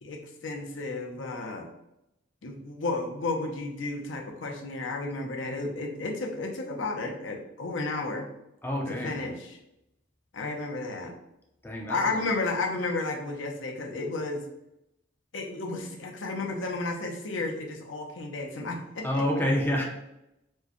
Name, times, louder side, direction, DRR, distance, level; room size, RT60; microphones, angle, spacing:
voice 1, 0.0-1.7 2.4-8.3 8.9-9.6 10.3-11.1 11.9-14.5 15.3-19.2, left 3 dB, 70° left, 2 dB, 0.6 m, -32 dB
voice 2, 8.6-9.2 11.6-12.2 19.0-19.8, equal, 10° left, -1 dB, 0.5 m, -28 dB
4.5 x 2.1 x 2.9 m, 0.86 s
head